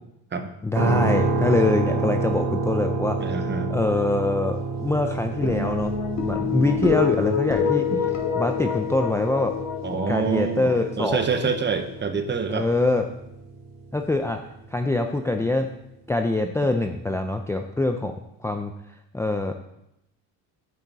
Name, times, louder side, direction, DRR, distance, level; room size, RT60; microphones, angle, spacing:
voice 1, 0.6-3.2 3.7-5.9 6.2-7.9 8.4-9.5 10.1-11.5 12.5-13.0 13.9-14.4 14.7-15.7 16.1-18.1 18.4-18.7 19.1-19.5, left 2 dB, 5° left, 4 dB, 0.5 m, -24 dB
sound 1, 0.8-14.8, right 4 dB, 65° right, 2.0 m, -30 dB
voice 2, 3.2-3.7 7.9-8.0 9.8-12.7, right 5 dB, 25° right, 8 dB, 1.0 m, -26 dB
sound 2, 5.4-12.0, left 7 dB, 40° left, 2.5 m, -27 dB
9.1 x 6.8 x 4.8 m, 0.82 s
cardioid pair, 115°, 40 cm